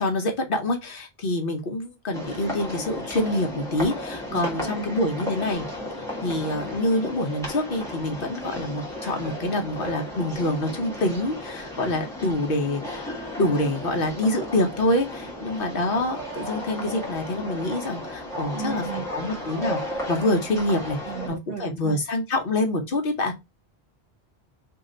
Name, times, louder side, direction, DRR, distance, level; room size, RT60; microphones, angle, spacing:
voice 1, 0.0-5.6 6.0-13.0 13.4-23.3, left 1 dB, 60° left, 1.0 m, -26 dB
sound 1, 2.1-21.3, left 1 dB, 5° left, 1.5 m, -34 dB
voice 2, 4.3-5.3 18.5-19.1 21.0-22.0, right 7 dB, 65° right, 1.1 m, -35 dB
3.2 x 2.7 x 3.8 m
omnidirectional pair, 1.0 m